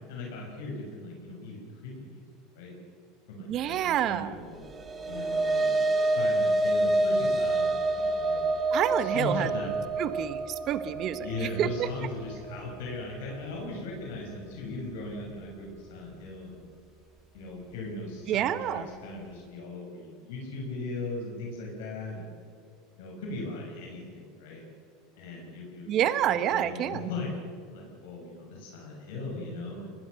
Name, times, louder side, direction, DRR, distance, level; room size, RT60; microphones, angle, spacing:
voice 1, 0.1-2.2 2.6-2.7 3.3-4.7 5.0-8.4 9.0-9.7 11.2-16.6 17.3-22.3 22.9-24.6 25.2-27.3 27.7-29.9, left 2 dB, 80° left, -1 dB, 6.1 m, -38 dB
voice 2, 3.5-4.3 8.7-9.5 10.0-11.3 11.6-11.9 18.3-18.9 25.9-27.1, right 10 dB, 45° right, 13 dB, 1.3 m, -28 dB
sound 1, 4.6-13.2, right 2 dB, 25° right, 2.4 m, -28 dB
24.0 x 20.0 x 6.5 m, 2.3 s
supercardioid pair, 120°, 0 cm